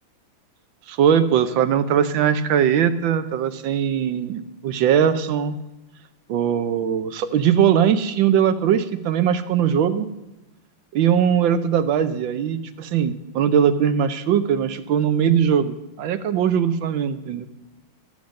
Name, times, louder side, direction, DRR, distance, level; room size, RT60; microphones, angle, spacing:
voice 1, 0.9-5.6 6.3-10.1 10.9-17.5, right 8 dB, 75° right, 11 dB, 1.4 m, -20 dB
13.0 x 7.3 x 6.3 m, 1.0 s
omnidirectional pair, 2.2 m